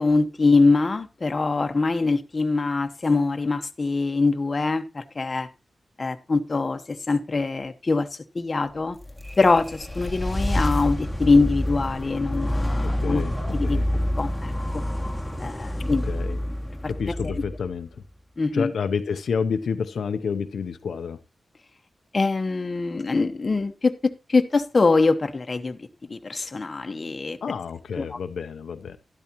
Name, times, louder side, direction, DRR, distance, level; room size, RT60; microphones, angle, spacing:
voice 1, 0.0-5.5 6.0-9.0 9.4-13.2 13.5-13.8 14.2-14.8 15.4-16.0 18.4-18.7 22.1-27.4 28.0-28.2, left 3 dB, 40° left, 1.0 m, -23 dB
sound 1, 9.0-18.1, left 1 dB, ahead, 2.1 m, -28 dB
Laughter / Crowd, 9.4-15.8, right 2 dB, 55° right, 3.2 m, -50 dB
voice 2, 12.8-13.9 16.0-16.4 16.9-18.0 18.5-21.2 27.4-29.0, left 6 dB, 85° left, 0.7 m, -29 dB
12.0 x 12.0 x 2.9 m
wide cardioid pair, 95°, 0 cm